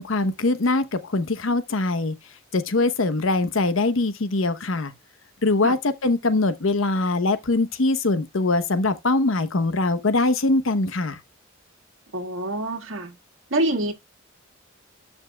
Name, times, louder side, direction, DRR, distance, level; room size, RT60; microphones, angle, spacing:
voice 1, 0.0-2.1 2.5-4.9 5.4-11.2, left 2 dB, 85° left, 0.9 m, -22 dB
voice 2, 12.1-13.2 13.5-13.9, right 1 dB, 80° right, 1.8 m, -26 dB
12.0 x 5.4 x 2.3 m
head